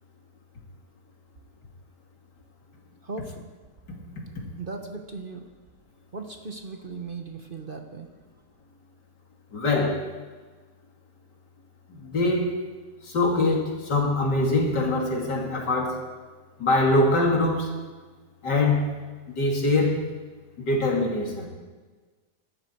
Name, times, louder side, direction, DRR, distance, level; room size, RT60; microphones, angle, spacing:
voice 1, 3.0-3.4 4.6-5.5 6.1-8.1, right 3 dB, 40° right, 4 dB, 1.0 m, -37 dB
voice 2, 9.5-10.1 12.0-12.5 13.1-16.0 16.6-17.7 18.4-18.9 19.4-20.0 20.6-21.5, left 2 dB, 85° left, -1 dB, 3.2 m, -23 dB
20.0 x 12.5 x 4.5 m, 1.4 s
omnidirectional pair, 1.8 m